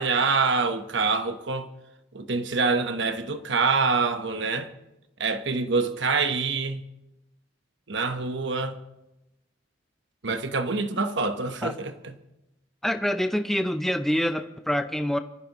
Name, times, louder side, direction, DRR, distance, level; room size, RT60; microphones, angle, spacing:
voice 1, 0.0-1.7 2.1-4.7 5.2-6.8 7.9-8.8 10.2-12.1, right 4 dB, 65° right, 1.1 m, -26 dB
voice 2, 12.8-15.2, equal, ahead, 0.5 m, -26 dB
26.0 x 14.0 x 3.0 m
head